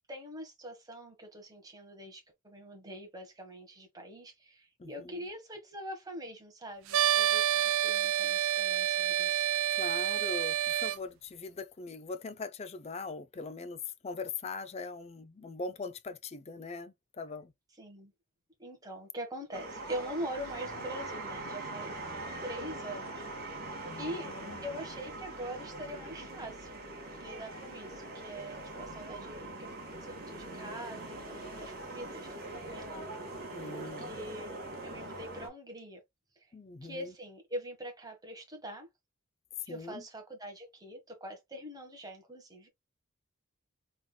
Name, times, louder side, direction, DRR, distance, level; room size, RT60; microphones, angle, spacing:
voice 1, 0.1-9.5 17.8-18.1 18.6-23.2 24.0-24.3 24.6-29.7 30.0-33.1 33.7-36.0 36.8-38.9 39.7-42.7, equal, 15° right, 1.4 m, -43 dB
voice 2, 4.8-5.3 9.7-17.5 23.8-24.7 33.5-34.2 36.5-37.1 39.7-40.0, left 4 dB, 30° left, 0.4 m, -41 dB
sound 1, 6.9-11.0, right 11 dB, 75° right, 0.4 m, -28 dB
sound 2, 19.5-35.5, right 2 dB, 45° right, 1.5 m, -42 dB
3.7 x 3.6 x 2.3 m
head